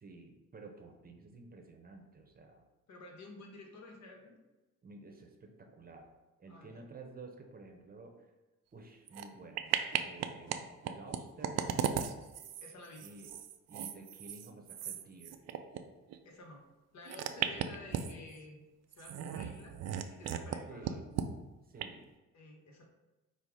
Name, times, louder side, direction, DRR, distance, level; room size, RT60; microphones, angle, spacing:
voice 1, 0.0-2.6 4.8-6.1 6.4-8.1 8.7-11.6 13.0-13.3 13.7-15.4 17.4-17.5 20.7-21.1 21.7-22.1, right 3 dB, 30° right, 2 dB, 0.8 m, -52 dB
voice 2, 2.9-4.4 6.5-6.8 12.6-13.1 16.2-16.7 16.9-21.0 22.3-22.9, left 2 dB, 65° left, 1 dB, 1.1 m, -52 dB
sound 1, 9.1-9.3 9.6-10.6 10.8-15.8 16.1-16.2 17.1-18.4 18.9-20.6 20.8-21.3 21.8-21.9, right 9 dB, 60° right, 0.4 m, -36 dB
5.5 x 2.0 x 4.7 m, 1.1 s
cardioid pair, 90°, 30 cm